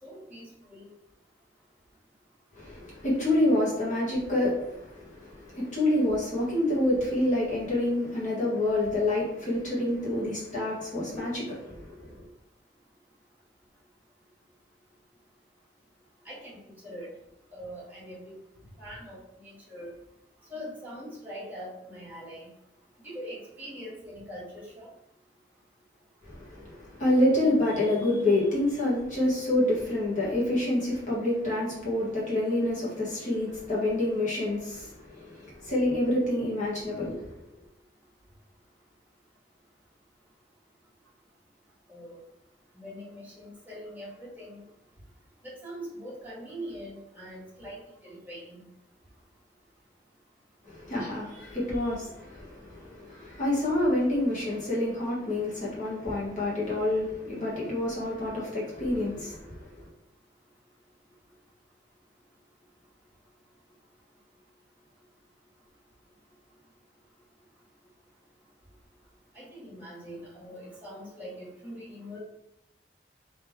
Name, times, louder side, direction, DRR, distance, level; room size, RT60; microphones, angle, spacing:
voice 1, 0.0-0.9 16.3-16.6 16.8-17.1 17.5-18.3 18.8-19.9 20.5-22.5 23.0-24.9 41.9-42.2 42.7-44.6 45.4-48.6 69.3-72.2, equal, 10° right, -8 dB, 1.8 m, -42 dB
voice 2, 2.5-12.1 26.2-37.3 50.6-59.9, left 1 dB, 45° left, -6 dB, 1.5 m, -28 dB
3.7 x 3.2 x 4.5 m, 0.81 s
head